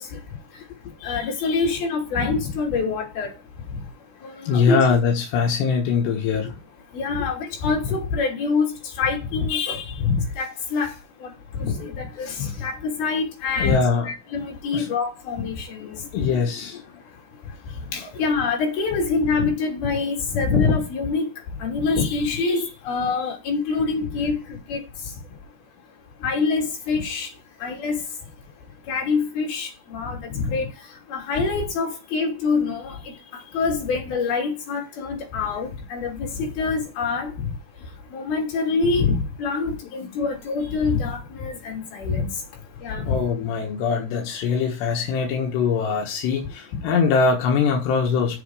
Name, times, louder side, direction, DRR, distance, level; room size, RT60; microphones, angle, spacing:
voice 1, 1.0-3.3 4.2-4.8 6.9-10.9 11.2-11.3 11.5-13.8 14.0-16.3 17.9-21.3 21.6-24.8 26.2-27.3 27.6-28.0 28.9-30.7 31.1-33.0 33.5-37.3 38.1-42.3 42.8-43.2, left 4 dB, 65° left, 4.9 m, -25 dB
voice 2, 4.5-6.5 13.6-14.1 14.7-14.9 16.0-16.8 17.9-18.1 40.0-40.1 43.0-48.4, left 5 dB, 90° left, 3.6 m, -22 dB
8.4 x 7.2 x 4.9 m
omnidirectional pair, 4.7 m